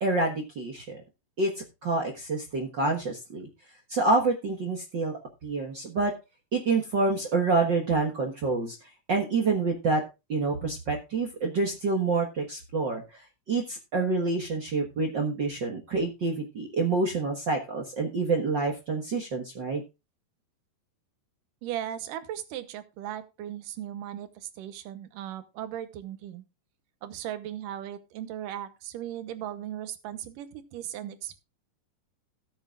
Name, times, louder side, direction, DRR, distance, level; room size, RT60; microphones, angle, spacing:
voice 1, 0.0-1.0 1.4-3.5 3.9-6.1 6.5-8.8 9.1-10.0 10.3-13.2 13.5-19.8, right 3 dB, 50° right, 2 dB, 1.4 m, -27 dB
voice 2, 21.6-26.4 27.0-31.4, right 11 dB, 75° right, 11 dB, 2.6 m, -37 dB
18.0 x 8.0 x 2.4 m, 0.26 s
omnidirectional pair, 4.0 m